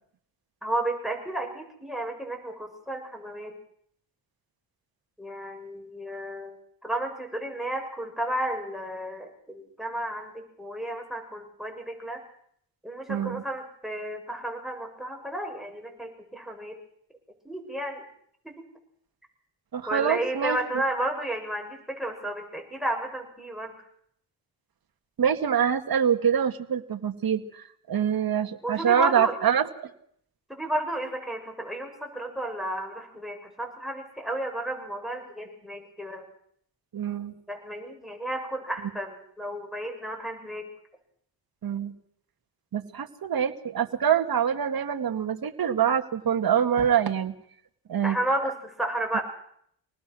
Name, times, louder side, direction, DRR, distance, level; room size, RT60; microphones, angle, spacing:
voice 1, 0.6-3.5 5.2-6.6 6.8-12.2 12.8-16.8 17.4-18.1 18.4-18.7 19.9-23.7 28.6-29.4 30.5-36.3 37.5-40.7 48.0-49.2, right 1 dB, ahead, 4 dB, 6.4 m, -32 dB
voice 2, 13.1-13.4 19.7-20.6 25.2-29.9 36.9-37.3 41.6-41.9 42.7-47.3 47.9-48.2, right 8 dB, 50° right, 7 dB, 2.0 m, -25 dB
26.5 x 19.0 x 6.3 m, 0.66 s
cardioid pair, 70°, 46 cm